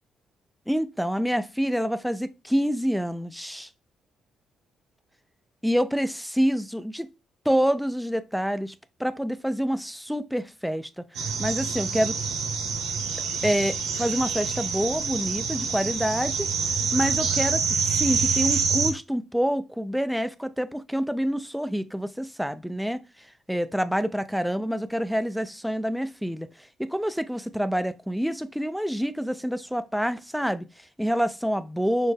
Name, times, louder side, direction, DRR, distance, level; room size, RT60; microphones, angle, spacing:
voice 1, 0.7-3.7 5.6-7.1 7.5-8.7 9.0-12.2 13.4-23.0 23.5-32.1, equal, ahead, 0.4 m, -27 dB
sound 1, 11.1-18.9, right 5 dB, 90° right, 0.9 m, -27 dB
6.3 x 2.1 x 3.3 m
cardioid pair, 90°, 0 cm